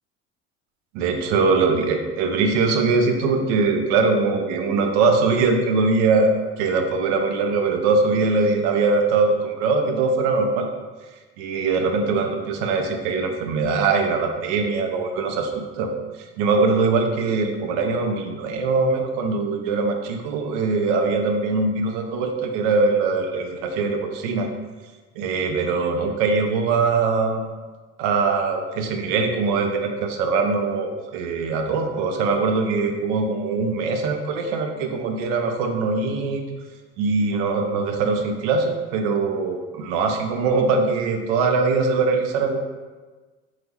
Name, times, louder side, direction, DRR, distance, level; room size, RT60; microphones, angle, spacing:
voice 1, 0.9-10.7 11.4-15.9 16.4-24.5 25.2-27.4 28.0-36.4 37.0-42.6, right 4 dB, 65° right, 5 dB, 0.5 m, -22 dB
3.3 x 2.3 x 2.9 m, 1.3 s
hypercardioid pair, 60°, 34 cm